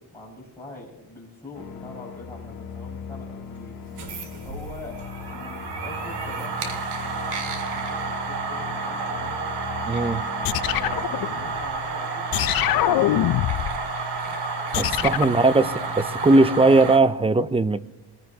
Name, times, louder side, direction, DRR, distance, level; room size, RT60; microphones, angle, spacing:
voice 1, 0.1-3.8 4.4-6.8 7.2-7.5 7.9-8.0 8.2-9.4 10.6-13.4 16.3-16.7, left 2 dB, 5° left, 5.1 m, -43 dB
sound 1, 1.5-11.0, left 6 dB, 90° left, 2.3 m, -39 dB
sound 2, 3.8-17.0, right 4 dB, 75° right, 2.2 m, -30 dB
voice 2, 9.9-10.3 14.8-17.8, right 2 dB, 15° right, 0.4 m, -19 dB
sound 3, 10.4-11.8 12.3-13.9 14.7-15.4, left 14 dB, 60° left, 0.5 m, -24 dB
22.0 x 16.0 x 2.8 m
cardioid pair, 135°, 40 cm